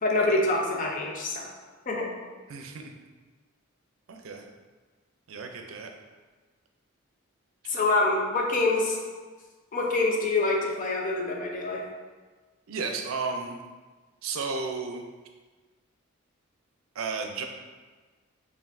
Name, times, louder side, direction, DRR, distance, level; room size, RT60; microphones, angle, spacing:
voice 1, 0.0-1.5 1.9-2.1 7.7-9.0 9.7-11.8, left 2 dB, 40° left, 0 dB, 0.6 m, -26 dB
voice 2, 2.5-2.9 4.1-4.4 5.3-5.9 12.7-13.6 14.2-15.0 17.0-17.4, right 4 dB, 85° right, 3 dB, 0.5 m, -33 dB
5.3 x 2.6 x 2.6 m, 1.3 s
head